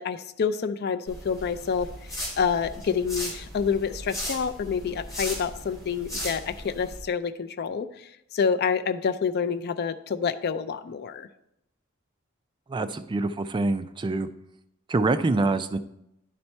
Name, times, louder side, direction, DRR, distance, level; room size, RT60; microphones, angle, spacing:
voice 1, 0.0-11.3, left 6 dB, 50° left, 11 dB, 0.4 m, -28 dB
sound 1, 1.1-7.0, equal, 15° left, 2.9 m, -37 dB
voice 2, 12.7-14.3 14.9-15.8, right 3 dB, 25° right, 11 dB, 0.3 m, -25 dB
10.5 x 4.2 x 4.4 m, 0.83 s
head